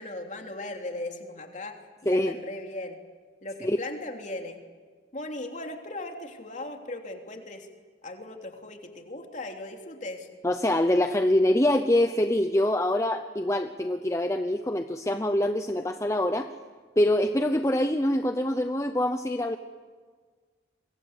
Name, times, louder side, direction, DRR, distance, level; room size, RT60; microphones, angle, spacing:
voice 1, 0.0-1.8 2.0-3.0 3.4-4.6 5.1-7.7 8.0-10.3, left 2 dB, 40° left, 3 dB, 3.2 m, -38 dB
voice 2, 2.1-2.4 3.6-3.8 10.4-16.5 17.0-19.6, left 1 dB, 15° left, 7 dB, 0.8 m, -24 dB
28.5 x 24.0 x 8.3 m, 1.6 s
head